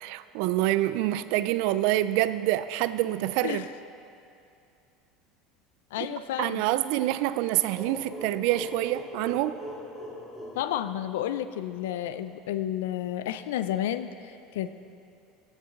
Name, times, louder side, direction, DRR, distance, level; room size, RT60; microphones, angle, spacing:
voice 1, 0.0-3.7 6.4-9.6, right 15 dB, 70° right, 14 dB, 0.3 m, -26 dB
voice 2, 5.9-6.6 10.5-14.7, left 11 dB, 80° left, 12 dB, 0.3 m, -31 dB
sound 1, 7.7-11.4, left 1 dB, 10° left, 2.4 m, -40 dB
13.5 x 7.3 x 3.8 m, 2.6 s
hypercardioid pair, 90°, 0 cm